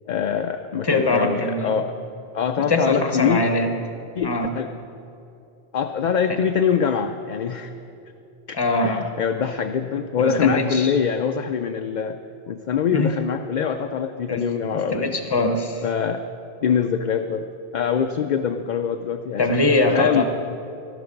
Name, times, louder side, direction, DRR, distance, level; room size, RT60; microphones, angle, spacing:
voice 1, 0.1-1.9 2.3-3.4 4.2-4.7 5.7-7.7 8.5-12.2 12.5-15.2 15.8-16.2 16.6-19.6 19.9-20.2, left 7 dB, 55° left, 6 dB, 0.5 m, -24 dB
voice 2, 0.8-1.7 2.6-3.7 4.2-4.5 6.3-6.4 8.5-9.1 10.2-10.9 12.9-13.1 14.3-15.8 19.4-20.2, left 2 dB, 25° left, 6 dB, 0.9 m, -22 dB
12.5 x 12.5 x 5.2 m, 2.6 s
omnidirectional pair, 1.1 m